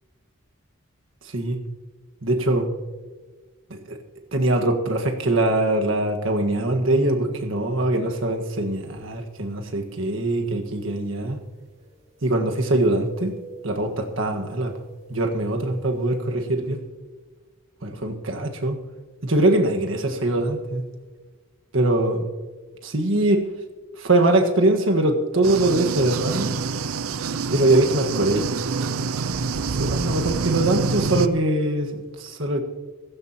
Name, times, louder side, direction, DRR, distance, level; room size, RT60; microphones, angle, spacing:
voice 1, 2.2-2.7 3.7-4.0 4.3-11.4 12.2-13.3 13.6-14.7 15.1-16.8 17.8-18.8 19.2-20.8 21.7-22.3 22.8-23.4 24.0-26.6 27.5-28.6 29.7-32.6, right 2 dB, 65° right, 4 dB, 1.6 m, -22 dB
sound 1, 8.9-9.0 9.8-9.9 11.8-13.0 13.3-14.1 14.5-15.9, right 2 dB, 30° right, 2.8 m, -47 dB
sound 2, 25.4-31.3, right 4 dB, 85° right, 0.6 m, -26 dB
16.5 x 15.0 x 3.0 m, 1.4 s
head